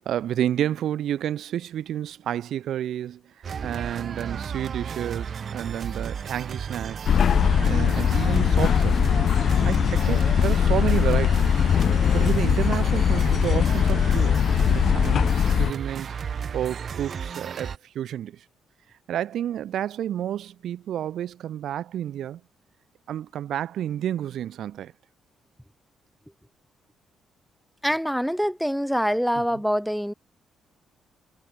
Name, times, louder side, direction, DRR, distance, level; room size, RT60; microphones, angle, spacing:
voice 1, 0.0-7.0 7.6-9.0 9.6-11.5 12.1-18.4 19.1-22.4 23.1-24.9 29.3-29.4, right 11 dB, 70° right, 0.8 m, -30 dB
sound 1, 3.4-17.8, right 7 dB, 50° right, 1.2 m, -33 dB
sound 2, 7.1-15.7, left 8 dB, 55° left, 0.3 m, -21 dB
voice 2, 27.8-30.1, equal, ahead, 1.3 m, -25 dB
cardioid pair, 90°, 0 cm